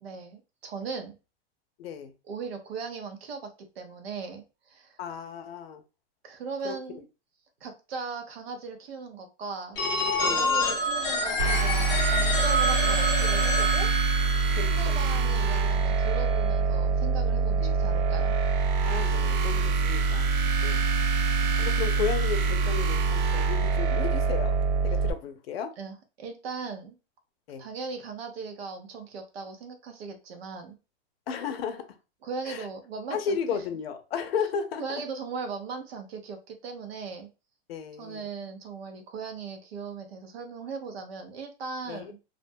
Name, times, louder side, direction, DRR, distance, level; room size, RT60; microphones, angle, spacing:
voice 1, 0.0-1.2 2.3-3.4 3.8-5.0 6.2-7.0 7.6-9.8 10.2-14.2 14.5-18.4 25.8-27.0 27.6-30.8 32.2-33.4 34.8-37.3 38.0-42.2, right 4 dB, 90° right, 0.8 m, -38 dB
voice 2, 1.8-2.1 5.0-5.8 6.6-6.8 10.2-10.8 14.6-15.0 17.6-18.2 18.8-20.3 20.6-20.8 21.6-25.8 27.5-27.6 31.3-31.9 32.4-32.7 33.1-34.8 37.7-38.3 41.9-42.1, left 7 dB, 80° left, 0.6 m, -34 dB
Telephone, 9.8-15.5, left 1 dB, 15° left, 0.4 m, -28 dB
sound 1, 11.4-25.1, right 4 dB, 50° right, 0.4 m, -25 dB
2.5 x 2.2 x 2.5 m
supercardioid pair, 150°, 30 cm